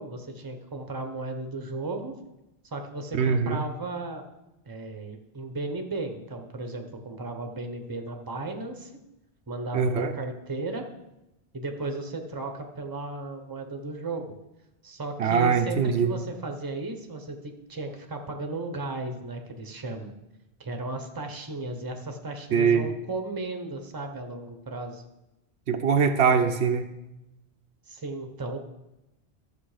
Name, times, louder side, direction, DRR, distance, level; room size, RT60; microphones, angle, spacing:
voice 1, 0.0-2.1 2.7-4.2 4.6-8.9 9.5-10.8 11.5-14.3 14.8-20.1 20.6-25.0 27.9-28.6, right 2 dB, 20° right, 5 dB, 0.9 m, -35 dB
voice 2, 3.1-3.6 9.7-10.1 15.2-16.1 22.5-22.9 25.7-26.9, right 6 dB, 80° right, 7 dB, 1.0 m, -22 dB
13.0 x 6.7 x 5.0 m, 0.95 s
omnidirectional pair, 1.1 m